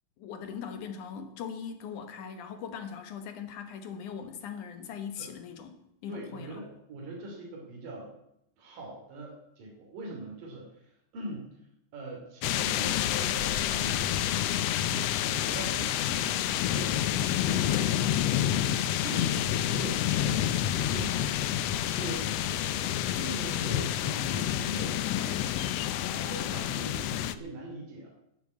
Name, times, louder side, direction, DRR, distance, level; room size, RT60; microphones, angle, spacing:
voice 1, 0.2-6.6, left 7 dB, 70° left, 7 dB, 2.7 m, -40 dB
voice 2, 6.1-8.1 8.6-11.6 11.9-14.5 14.8-17.8 19.0-20.6 20.9-21.4 21.7-22.9 23.2-25.4 26.1-28.1, right 2 dB, 85° right, -2 dB, 4.4 m, -42 dB
sound 1, 12.4-27.4, left 11 dB, 90° left, 1.4 m, -28 dB
11.0 x 11.0 x 8.2 m, 0.79 s
omnidirectional pair, 3.8 m